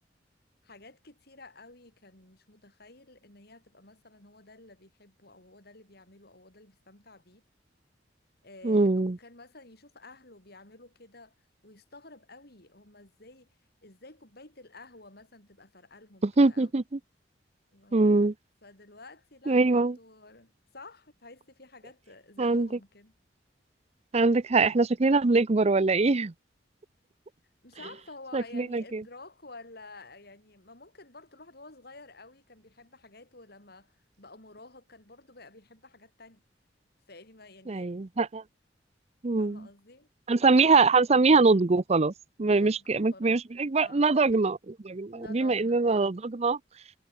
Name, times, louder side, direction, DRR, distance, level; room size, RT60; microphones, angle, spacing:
voice 1, 0.6-7.4 8.4-11.4 11.6-13.6 13.8-16.7 17.7-18.0 18.6-23.1 27.6-36.4 37.1-38.1 39.4-40.1 42.4-43.4 43.8-44.1 45.1-45.8, left 2 dB, 60° left, 7.5 m, -51 dB
voice 2, 8.6-9.2 16.2-17.0 17.9-18.3 19.5-20.0 22.4-22.7 24.1-26.3 28.3-29.0 37.7-38.4 39.2-39.7 40.3-42.1 42.4-46.6, right 3 dB, 35° right, 0.6 m, -23 dB
head